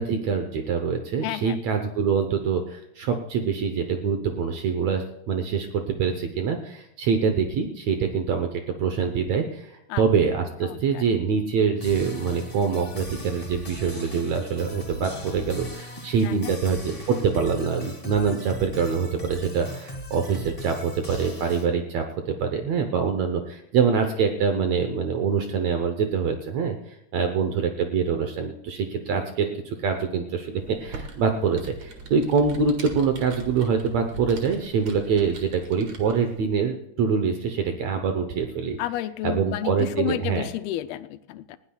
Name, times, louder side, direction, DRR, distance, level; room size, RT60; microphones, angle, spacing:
voice 1, 0.0-29.5 29.8-38.8 39.2-40.5, right 6 dB, 75° right, 5 dB, 1.6 m, -25 dB
voice 2, 1.2-1.6 9.9-10.0 10.6-11.0 16.2-16.6 38.8-41.6, left 14 dB, 85° left, 11 dB, 2.5 m, -31 dB
sound 1, 11.8-21.7, left 1 dB, 20° left, 1.1 m, -39 dB
Computer keyboard, 30.6-36.4, right 3 dB, 50° right, 2.5 m, -41 dB
20.0 x 16.0 x 2.3 m, 0.83 s
omnidirectional pair, 4.4 m